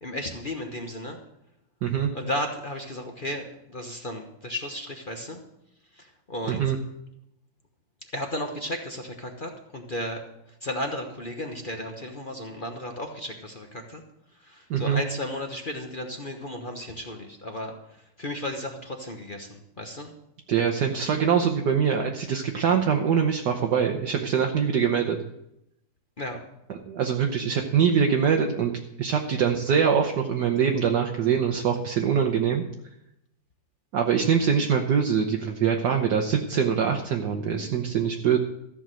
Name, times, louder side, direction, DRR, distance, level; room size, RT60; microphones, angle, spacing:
voice 1, 0.0-1.2 2.1-5.4 5.9-6.6 8.1-10.2 10.6-14.0 14.4-20.1 26.2-26.4, left 1 dB, 35° left, 3 dB, 1.0 m, -34 dB
voice 2, 14.7-15.0 20.5-25.2 26.9-28.7 29.0-32.6 33.9-38.4, right 7 dB, 65° right, 3 dB, 1.4 m, -23 dB
14.0 x 6.1 x 7.7 m, 0.83 s
omnidirectional pair, 2.1 m